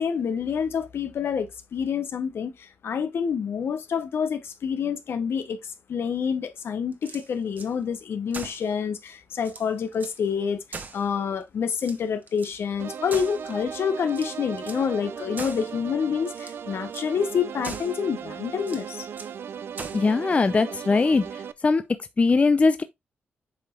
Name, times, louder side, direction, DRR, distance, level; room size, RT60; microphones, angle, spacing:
voice 1, 0.0-10.6 10.9-19.1, left 7 dB, 75° left, 1.0 m, -28 dB
sound 1, 6.9-7.7 8.3-8.7 9.1-9.2 9.4-10.2 10.7-11.4 11.8-12.6 13.1-13.7 14.1-14.9 15.4-15.7 16.3-16.6 16.9-17.1 17.6-18.0 18.6-19.4 19.8-20.1, right 4 dB, 45° right, 1.1 m, -40 dB
sound 2, 12.8-21.5, right 7 dB, 75° right, 0.5 m, -37 dB
voice 2, 19.9-21.8 22.2-22.8, left 4 dB, 30° left, 0.5 m, -21 dB
8.0 x 5.0 x 2.4 m
wide cardioid pair, 105°, 4 cm